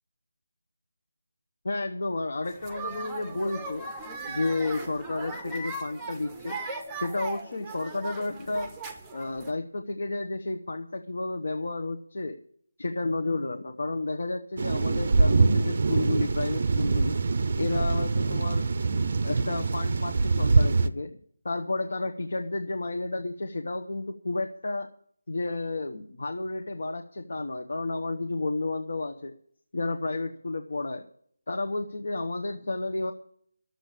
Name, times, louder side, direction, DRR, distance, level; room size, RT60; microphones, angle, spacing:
voice 1, 1.6-3.8 4.3-6.6 7.0-8.7 9.1-12.4 12.8-17.1 17.6-18.7 19.2-21.2 21.4-24.9 25.3-29.3 29.7-31.0 31.5-33.1, left 2 dB, 50° left, 4 dB, 1.3 m, -31 dB
sound 1, 2.4-9.5, right 3 dB, 5° right, 0.8 m, -38 dB
sound 2, 14.6-20.9, right 3 dB, 35° right, 0.6 m, -24 dB
12.0 x 8.0 x 8.6 m, 0.62 s
figure-of-eight pair, 175°, 0 cm